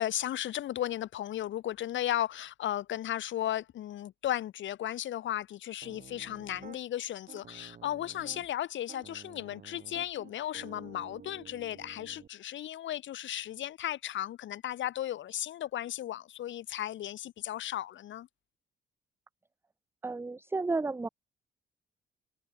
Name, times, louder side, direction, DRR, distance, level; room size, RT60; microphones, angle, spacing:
voice 1, 0.0-18.3, left 12 dB, 70° left, 1.4 m, -35 dB
Piano, 5.8-6.8 7.3-8.5 8.9-12.3, right 7 dB, 45° right, 3.2 m, -51 dB
voice 2, 20.0-21.1, right 3 dB, 10° right, 0.5 m, -32 dB
cardioid pair, 90°, 20 cm